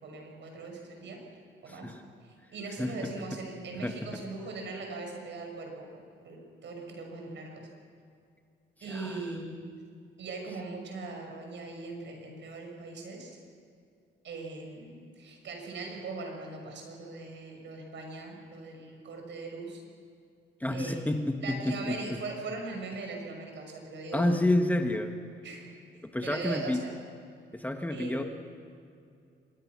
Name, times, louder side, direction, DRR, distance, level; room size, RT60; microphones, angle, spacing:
voice 1, 0.0-1.2 1.6-1.9 2.2-7.7 8.8-9.8 10.2-13.4 14.2-19.8 20.7-21.1 21.4-24.3 25.4-25.7 26.2-26.9 27.9-28.2, right 3 dB, 65° right, 2 dB, 6.5 m, -40 dB
voice 2, 1.7-2.0 2.4-2.5 2.8-3.1 3.7-3.9 8.8-9.3 20.6-22.0 24.1-25.1 26.0-26.8 27.5-28.2, left 1 dB, 10° left, 5 dB, 1.4 m, -29 dB
25.5 x 21.5 x 6.3 m, 2.4 s
cardioid pair, 90°, 20 cm